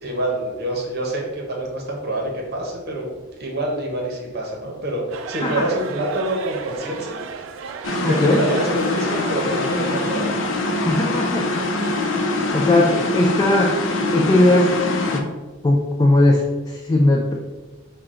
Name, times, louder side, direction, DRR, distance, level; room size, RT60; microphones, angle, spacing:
voice 1, 0.0-7.2 8.1-10.3, right 1 dB, 55° right, 0 dB, 0.8 m, -26 dB
sound 1, 5.1-10.2, right 5 dB, 85° right, 0.4 m, -34 dB
sound 2, 7.8-15.2, left 2 dB, 70° left, 0.6 m, -23 dB
voice 2, 8.0-8.4 10.9-11.5 12.5-13.8 14.1-14.7 15.1-15.3 15.6-17.3, left 1 dB, 20° left, 0 dB, 0.4 m, -18 dB
5.8 x 2.2 x 3.7 m, 1.2 s
head